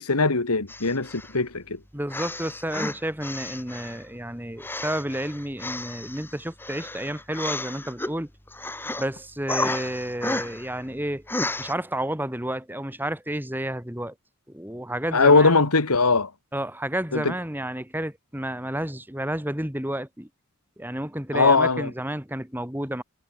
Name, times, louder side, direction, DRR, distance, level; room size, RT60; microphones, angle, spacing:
voice 1, 0.0-1.8 15.1-16.3 17.1-17.3 21.3-21.9, left 3 dB, 90° left, 2.0 m, -20 dB
sound 1, 0.7-1.4 2.1-4.0 4.6-8.1 8.5-9.1 9.5-10.7 11.3-11.7, left 2 dB, 10° left, 2.8 m, -32 dB
voice 2, 1.9-8.3 9.0-11.3 11.6-14.1 14.5-15.5 16.5-20.3 20.8-23.0, right 1 dB, 10° right, 2.0 m, -31 dB
head